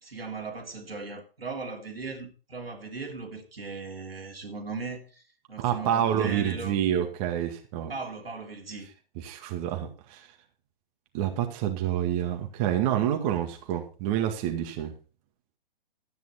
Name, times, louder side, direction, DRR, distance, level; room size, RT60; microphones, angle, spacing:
voice 1, 0.0-5.2 5.5-6.8 7.9-8.9, right 4 dB, 90° right, 3.3 m, -38 dB
voice 2, 5.6-7.9 9.2-10.2 11.1-14.9, right 10 dB, 40° right, 2.0 m, -28 dB
13.0 x 9.3 x 4.3 m
hypercardioid pair, 125°, 29 cm